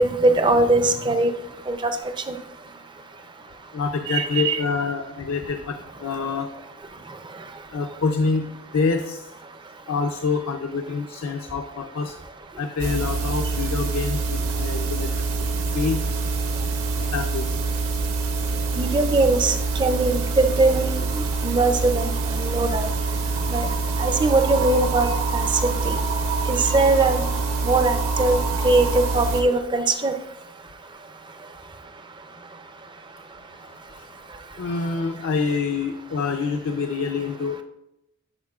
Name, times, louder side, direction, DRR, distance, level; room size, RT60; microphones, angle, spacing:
voice 1, 0.0-1.3 1.7-1.9 4.1-4.6 18.8-19.5 19.8-22.1 22.4-22.9 23.5-23.7 24.0-25.5 25.8-26.0 26.5-27.2 27.6-28.4 28.6-30.1, right 2 dB, 20° right, 8 dB, 0.4 m, -21 dB
voice 2, 3.7-6.5 7.7-9.2 9.9-12.1 12.6-15.4 15.7-16.0 17.0-17.5 34.0-34.1 34.6-37.6, left 4 dB, 65° left, 4 dB, 0.5 m, -26 dB
sound 1, 12.8-29.4, right 3 dB, 70° right, 0.9 m, -25 dB
11.0 x 4.4 x 2.3 m, 0.86 s
head